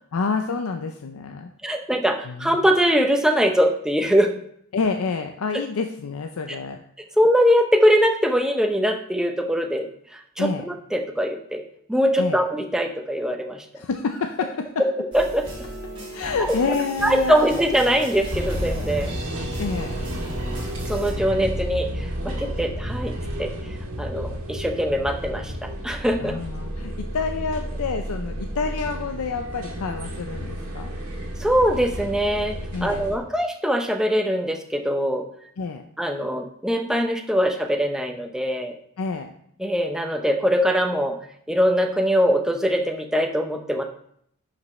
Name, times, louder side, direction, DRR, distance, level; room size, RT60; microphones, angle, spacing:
voice 1, 0.1-1.5 2.2-2.7 4.7-6.8 10.4-10.7 12.2-12.4 13.8-14.8 16.1-17.6 19.2-19.3 19.6-20.0 21.3-21.6 26.2-30.9 32.7-33.1 35.6-35.9 39.0-39.3, left 4 dB, 75° left, 5 dB, 0.5 m, -28 dB
voice 2, 1.6-4.3 7.2-9.9 10.4-11.6 11.9-13.6 15.1-15.5 17.0-19.1 20.9-21.9 22.2-23.1 23.4-23.5 24.0-26.4 31.4-35.3 36.0-38.7 39.6-41.2 41.5-43.8, equal, 5° right, 4 dB, 0.6 m, -22 dB
sound 1, 15.1-21.1, equal, 25° right, 2.4 m, -35 dB
sound 2, 18.3-33.2, equal, 70° right, 1.8 m, -31 dB
11.0 x 5.2 x 3.1 m, 0.68 s
head